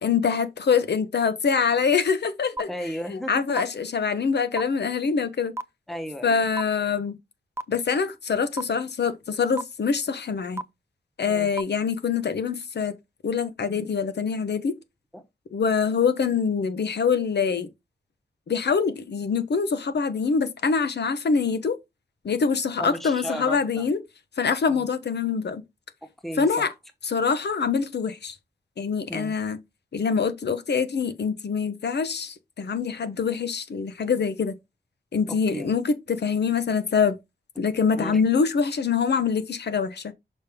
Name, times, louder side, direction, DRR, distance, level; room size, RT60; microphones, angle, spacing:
voice 1, 0.0-2.7 3.1-5.5 6.2-7.1 7.7-10.6 11.2-12.9 13.2-14.7 15.5-17.7 18.5-21.8 22.2-24.0 24.4-25.6 26.4-26.7 27.1-28.4 28.8-29.6 29.9-34.5 35.1-37.1 37.6-40.0, left 5 dB, 70° left, 1.1 m, -24 dB
sound 1, 2.6-2.7 3.6-3.7 4.6-4.7 5.6-5.7 6.6-6.7 7.6-7.7 8.6-8.7 9.6-9.7 10.6-10.7 11.6-11.7, right 2 dB, 15° right, 0.5 m, -28 dB
voice 2, 2.7-3.4 5.9-6.4 11.3-11.5 15.1-15.2 22.8-23.9 24.7-24.9 26.0-26.7 29.1-29.4 35.3-35.7 37.9-38.2, equal, ahead, 1.1 m, -35 dB
6.4 x 5.3 x 3.6 m
wide cardioid pair, 140°, 18 cm